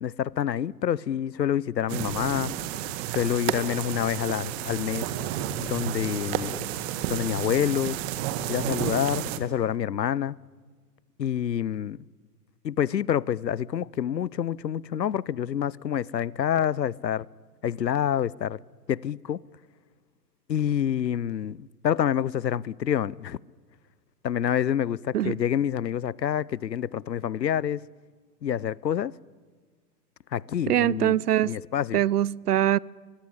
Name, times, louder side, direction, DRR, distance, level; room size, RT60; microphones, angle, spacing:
voice 1, 0.0-2.5 3.1-5.1 5.6-6.6 7.1-8.0 8.5-10.4 11.2-12.0 12.6-17.3 17.6-18.6 18.9-19.4 20.5-23.4 24.2-27.8 28.4-29.1 30.3-31.2 31.4-32.0, left 9 dB, 90° left, 0.7 m, -27 dB
sound 1, 1.9-9.4, right 11 dB, 40° right, 1.9 m, -31 dB
voice 2, 30.7-31.5 31.9-32.8, right 12 dB, 70° right, 0.7 m, -23 dB
23.0 x 22.5 x 9.9 m
hypercardioid pair, 115°, 49 cm